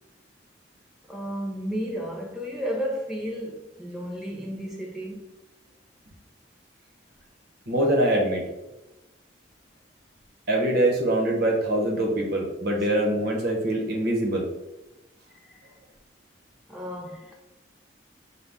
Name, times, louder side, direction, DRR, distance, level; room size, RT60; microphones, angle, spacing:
voice 1, 1.1-5.3 15.3-15.6 16.7-17.3, equal, ahead, 0.4 m, -33 dB
voice 2, 7.7-8.4 10.5-14.5, right 1 dB, 55° right, 0.9 m, -24 dB
5.5 x 2.2 x 3.4 m
head